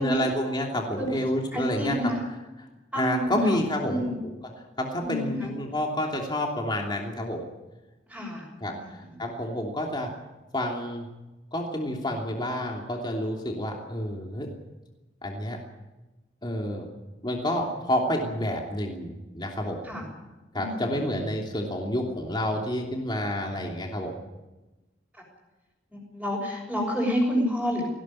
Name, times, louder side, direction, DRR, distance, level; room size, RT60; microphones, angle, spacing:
voice 1, 0.0-2.0 3.0-4.1 4.8-7.4 8.6-10.1 10.5-11.0 11.5-14.5 15.2-15.6 16.4-16.8 17.2-19.8 20.5-24.1, left 1 dB, 25° left, 0 dB, 3.0 m, -29 dB
voice 2, 1.5-2.2 2.9-4.2 5.0-5.5 8.1-9.3 19.8-20.1 20.5-21.2 25.9-27.9, equal, ahead, -5 dB, 6.0 m, -30 dB
19.5 x 17.0 x 10.0 m, 1.1 s
head